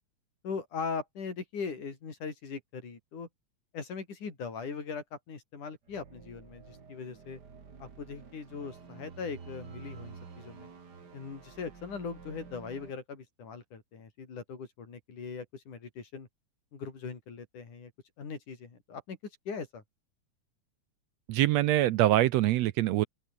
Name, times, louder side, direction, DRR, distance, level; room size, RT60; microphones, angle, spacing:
voice 1, 0.4-3.3 3.7-7.4 7.8-10.7 11.1-16.3 16.7-17.9 18.2-19.2 19.5-19.8, left 5 dB, 80° left, 6.1 m, -40 dB
sound 1, 5.9-12.9, right 5 dB, 35° right, 2.6 m, -50 dB
voice 2, 21.3-23.1, right 15 dB, 75° right, 1.6 m, -24 dB
open air
omnidirectional pair, 3.5 m